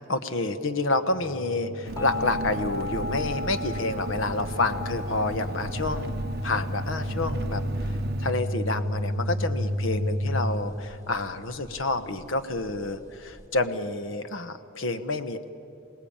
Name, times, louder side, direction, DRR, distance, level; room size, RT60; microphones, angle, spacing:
voice 1, 0.1-15.4, left 2 dB, 70° left, 10 dB, 1.1 m, -29 dB
sound 1, 1.1-10.5, left 1 dB, 45° left, 6.3 m, -32 dB
Engine, 1.9-8.3, right 3 dB, 50° right, 0.6 m, -36 dB
sound 2, 2.0-13.5, left 3 dB, 20° left, 2.9 m, -39 dB
27.0 x 18.0 x 8.8 m, 2.8 s
head